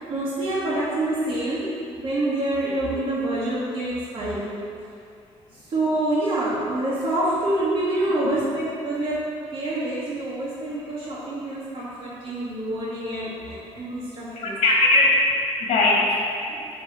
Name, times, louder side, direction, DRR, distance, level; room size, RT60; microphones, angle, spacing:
voice 1, 0.0-4.5 5.7-14.6, right 1 dB, 45° right, -10 dB, 1.4 m, -26 dB
voice 2, 14.3-15.2 15.6-16.6, left 2 dB, 75° left, -3 dB, 1.5 m, -20 dB
8.1 x 3.3 x 4.1 m, 2.4 s
cardioid pair, 115°, 12 cm